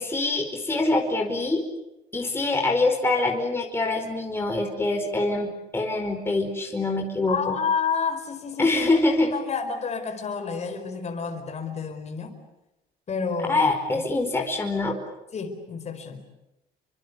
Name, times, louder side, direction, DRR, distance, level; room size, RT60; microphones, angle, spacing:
voice 1, 0.0-1.6 2.1-7.5 8.6-9.3 13.5-15.0, left 2 dB, 15° left, 2 dB, 4.9 m, -24 dB
voice 2, 7.3-12.3 13.1-13.6 13.9-14.0 15.3-16.2, left 6 dB, 40° left, 5 dB, 4.7 m, -30 dB
29.0 x 25.0 x 8.2 m, 0.92 s
cardioid pair, 110°, 17 cm